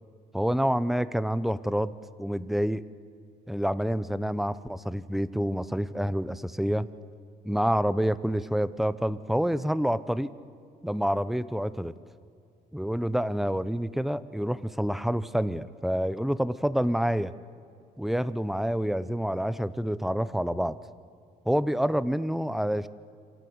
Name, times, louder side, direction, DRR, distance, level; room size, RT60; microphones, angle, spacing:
voice 1, 0.3-2.8 3.5-6.9 7.4-10.3 10.8-11.9 12.7-17.3 18.0-20.8 21.5-22.9, equal, ahead, 15 dB, 0.8 m, -27 dB
28.0 x 26.5 x 8.0 m, 2.4 s
cardioid pair, 110°, 17 cm